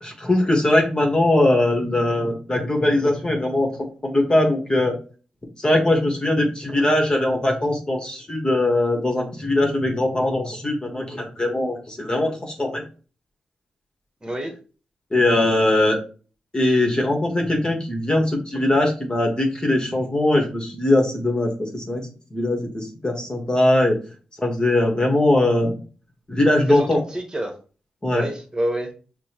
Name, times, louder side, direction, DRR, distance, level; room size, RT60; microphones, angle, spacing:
voice 1, 0.0-3.7 4.0-4.9 5.6-12.8 15.1-16.0 16.5-22.0 22.3-23.9 24.4-25.7 26.3-27.0 28.0-28.2, left 1 dB, 25° left, 0 dB, 1.3 m, -20 dB
voice 2, 14.2-14.5 26.7-27.5 28.1-28.9, right 1 dB, 25° right, 3 dB, 1.2 m, -27 dB
6.0 x 2.2 x 3.0 m, 0.38 s
cardioid pair, 50°, 3 cm